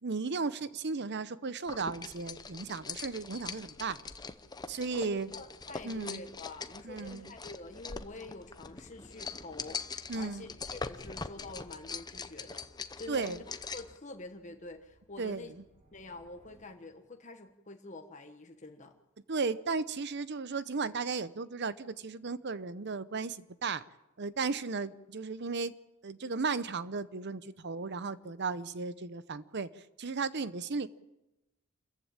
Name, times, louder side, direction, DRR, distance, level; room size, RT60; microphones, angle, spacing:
voice 1, 0.0-4.0 4.7-5.3 5.8-6.2 6.8-7.2 10.1-10.5 13.1-13.4 15.2-15.6 19.3-23.8 24.2-25.8 26.0-30.9, right 4 dB, 55° right, 15 dB, 0.8 m, -35 dB
sound 1, 1.7-14.0, left 4 dB, 20° left, 0.8 m, -43 dB
voice 2, 4.9-12.7 13.0-13.4 13.7-15.5 15.9-19.0, left 2 dB, 35° left, 5 dB, 1.2 m, -47 dB
sound 2, 12.6-17.2, equal, 35° right, 7.8 m, -68 dB
27.0 x 15.0 x 8.8 m, 0.96 s
head